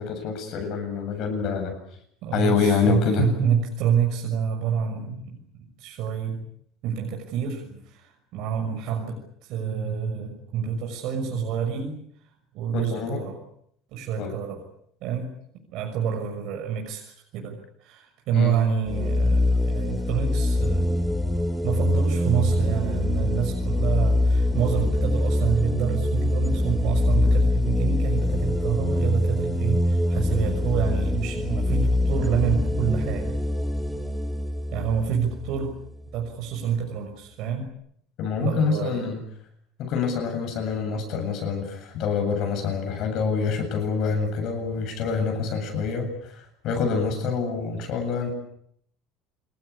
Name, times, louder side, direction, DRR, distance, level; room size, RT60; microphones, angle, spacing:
voice 1, 0.0-1.7 2.3-3.2 12.7-13.2 14.2-14.3 18.3-18.6 38.2-39.2 39.8-48.3, left 5 dB, 45° left, 5 dB, 7.8 m, -26 dB
voice 2, 2.2-5.4 5.8-6.4 6.8-12.0 12.5-13.4 13.9-14.6 15.0-15.3 15.7-20.9 21.6-33.3 34.7-35.7 36.1-37.7 38.4-39.1, right 7 dB, 50° right, 1 dB, 6.4 m, -27 dB
sound 1, 18.8-36.3, left 1 dB, ahead, 1.9 m, -24 dB
28.0 x 21.5 x 8.6 m, 0.72 s
cardioid pair, 165°, 0 cm